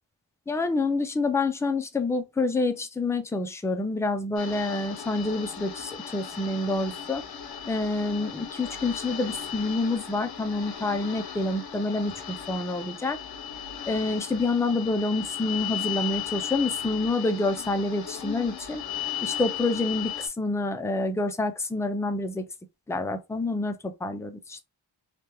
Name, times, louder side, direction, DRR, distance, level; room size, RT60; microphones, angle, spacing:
voice 1, 0.5-7.2 7.7-13.2 13.9-18.8 19.2-22.4 22.9-24.6, left 2 dB, 5° left, 0.3 m, -27 dB
sound 1, 4.4-20.3, left 9 dB, 50° left, 0.7 m, -36 dB
3.3 x 2.2 x 2.9 m
wide cardioid pair, 85°, 48 cm